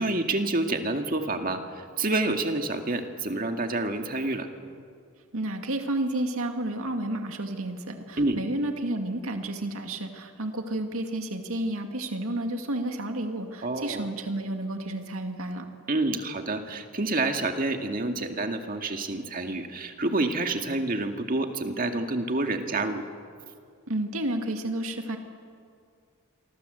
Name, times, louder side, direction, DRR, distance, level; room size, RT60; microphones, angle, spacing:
voice 1, 0.0-1.6 2.0-4.5 8.2-8.4 13.6-14.1 15.9-23.1, right 2 dB, 40° right, 5 dB, 2.0 m, -28 dB
voice 2, 5.3-15.7 23.9-25.2, right 1 dB, 70° right, 5 dB, 2.3 m, -31 dB
28.0 x 24.0 x 8.0 m, 2.3 s
head